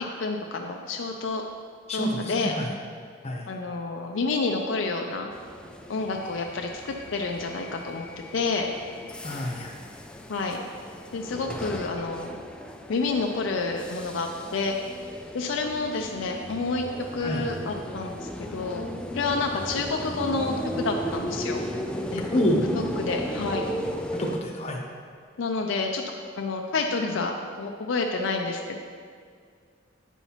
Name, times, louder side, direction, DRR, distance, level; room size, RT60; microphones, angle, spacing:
voice 1, 0.0-1.4 1.9-2.5 3.5-5.3 5.9-8.1 8.3-8.7 10.3-10.6 11.1-12.4 12.9-14.8 15.3-16.9 17.1-18.8 19.1-21.6 22.1-22.2 22.7-23.7 25.4-26.0 26.4-28.8, left 3 dB, 70° left, 2 dB, 0.4 m, -29 dB
voice 2, 1.9-2.7 3.2-3.5 9.2-9.7 17.2-17.5 22.3-22.7 24.2-24.8, equal, 35° left, 0 dB, 0.9 m, -27 dB
sound 1, 5.3-24.4, equal, 5° left, 0.3 m, -36 dB
9.0 x 5.6 x 3.0 m, 2.1 s
head